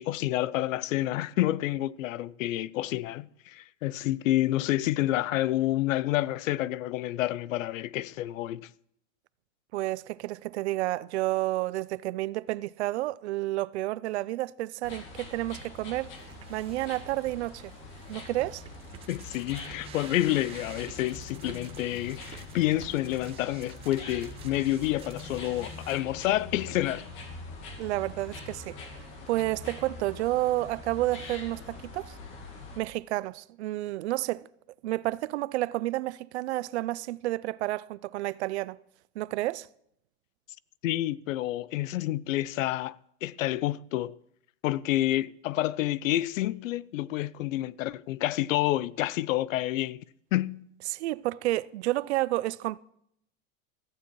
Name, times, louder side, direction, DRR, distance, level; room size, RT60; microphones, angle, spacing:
voice 1, 0.0-8.7 19.1-27.1 40.8-44.2 44.6-50.0 50.3-50.7, left 15 dB, 75° left, 0.6 m, -29 dB
voice 2, 9.7-16.1 16.5-17.7 18.1-18.6 27.8-28.8 29.3-32.1 32.8-34.5 34.8-38.8 39.2-39.7 50.9-52.8, right 17 dB, 55° right, 0.5 m, -30 dB
sound 1, 14.8-32.8, left 3 dB, 30° left, 2.2 m, -44 dB
sound 2, 16.0-26.0, right 8 dB, 15° right, 0.7 m, -50 dB
16.0 x 14.5 x 4.7 m
supercardioid pair, 175°, 39 cm